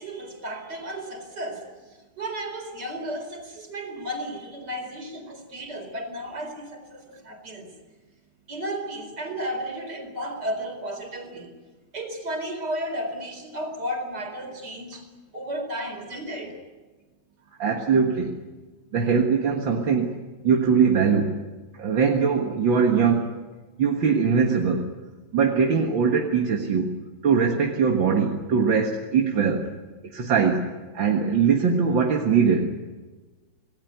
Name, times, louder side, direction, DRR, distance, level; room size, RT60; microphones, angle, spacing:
voice 1, 0.0-1.6 2.2-7.7 8.5-11.5 11.9-15.0 15.3-16.6, equal, 60° right, 5 dB, 5.0 m, -33 dB
voice 2, 17.6-18.3 18.9-20.2 20.4-21.5 21.8-23.3 23.8-24.9 25.3-27.0 27.2-29.7 30.1-30.7 30.9-32.8, right 6 dB, 80° right, 2 dB, 2.5 m, -21 dB
27.5 x 18.5 x 9.4 m, 1.3 s
omnidirectional pair, 2.0 m